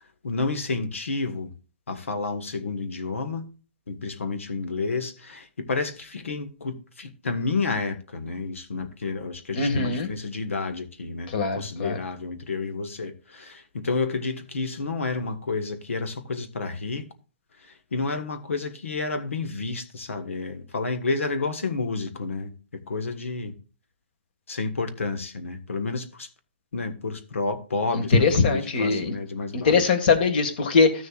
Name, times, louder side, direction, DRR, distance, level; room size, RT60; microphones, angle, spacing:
voice 1, 0.2-1.5 1.9-3.5 3.9-17.1 17.9-22.5 22.9-23.5 24.5-26.3 26.7-29.8, left 3 dB, 85° left, 1.4 m, -30 dB
voice 2, 9.5-10.1 11.3-12.0 27.9-29.1 29.5-30.9, left 4 dB, 45° left, 1.7 m, -21 dB
14.5 x 6.6 x 2.4 m
hypercardioid pair, 150°, 7 cm